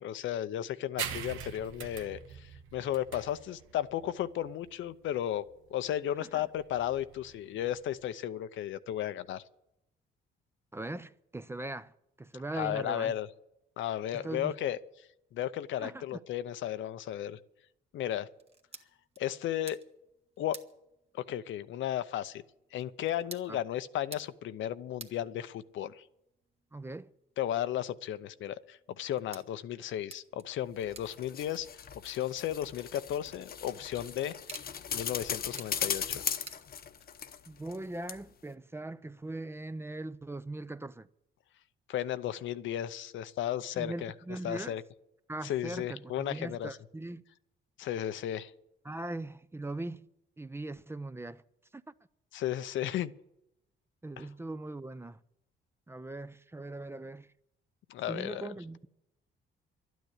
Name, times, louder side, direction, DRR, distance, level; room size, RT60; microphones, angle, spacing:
voice 1, 0.0-5.4 5.7-9.4 12.6-13.3 13.8-14.8 15.3-17.4 17.9-18.3 19.2-19.8 20.4-20.6 21.3-22.4 22.7-26.0 27.4-31.7 32.0-34.3 34.9-36.2 41.9-44.1 44.4-44.8 45.4-46.7 47.8-48.5 52.3-53.1 54.2-54.3 57.9-58.5, left 11 dB, 75° left, 0.7 m, -34 dB
sound 1, 1.0-8.1, right 9 dB, 85° right, 1.0 m, -43 dB
voice 2, 10.7-13.1 14.1-14.6 15.8-16.2 23.5-23.6 26.7-27.1 37.5-41.1 43.8-44.8 45.3-47.2 48.8-50.1 50.4-51.4 51.7-51.8 54.0-55.2 55.9-57.3 58.1-58.9, right 2 dB, 10° right, 0.5 m, -40 dB
sound 2, 18.3-37.4, right 3 dB, 30° right, 1.4 m, -55 dB
sound 3, 30.8-37.8 38.1-38.2, left 7 dB, 50° left, 0.9 m, -38 dB
12.0 x 9.3 x 9.7 m
cardioid pair, 90°, 20 cm